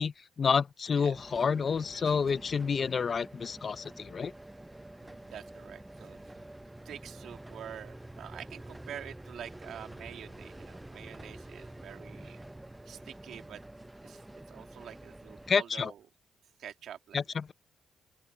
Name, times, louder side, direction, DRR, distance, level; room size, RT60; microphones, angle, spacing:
voice 1, 0.0-4.3 15.5-15.9 17.1-17.5, left 6 dB, 45° left, 0.5 m, -29 dB
sound 1, 1.1-15.5, right 1 dB, 10° right, 0.5 m, -48 dB
voice 2, 5.0-6.5 6.8-12.4 12.9-13.6 14.0-14.2 14.5-16.0 16.6-17.2, right 9 dB, 75° right, 2.4 m, -47 dB
open air
cardioid pair, 95°, 0 cm